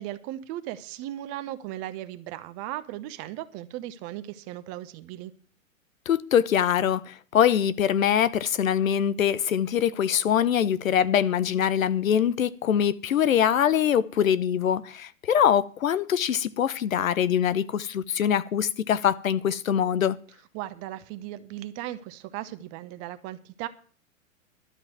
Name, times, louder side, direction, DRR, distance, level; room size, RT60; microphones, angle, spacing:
voice 1, 0.0-5.3 20.5-23.7, right 14 dB, 35° right, 1.0 m, -37 dB
voice 2, 6.1-20.2, left 9 dB, 75° left, 0.9 m, -23 dB
12.0 x 6.0 x 9.1 m
hypercardioid pair, 110°, 41 cm